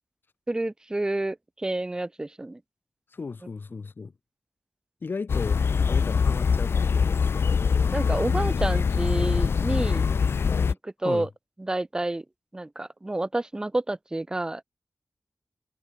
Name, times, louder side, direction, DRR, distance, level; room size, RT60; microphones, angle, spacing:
voice 1, 0.5-2.6 7.9-10.1 10.8-11.3 11.6-12.2 12.5-14.6, right 2 dB, 20° right, 0.5 m, -29 dB
voice 2, 3.1-4.1 5.0-7.4 11.0-11.3, left 4 dB, 60° left, 1.4 m, -35 dB
sound 1, 5.3-10.7, left 6 dB, 80° left, 0.6 m, -23 dB
wide cardioid pair, 95°, 4 cm